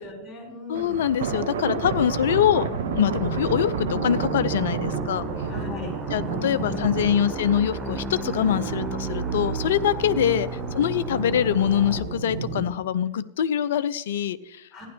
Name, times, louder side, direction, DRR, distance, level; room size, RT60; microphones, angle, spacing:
voice 1, 0.0-1.0 5.4-6.9 8.3-8.7 10.1-10.3 14.7-14.9, left 2 dB, 15° left, -2 dB, 5.3 m, -37 dB
voice 2, 0.7-2.7 3.0-5.3 6.1-10.5 10.7-14.7, left 9 dB, 60° left, 15 dB, 0.5 m, -24 dB
sound 1, 0.7-12.6, right 5 dB, 55° right, 1.6 m, -32 dB
sound 2, 2.3-12.0, right 3 dB, 15° right, 1.3 m, -33 dB
15.5 x 10.5 x 3.4 m, 0.83 s
figure-of-eight pair, 90°, 0 cm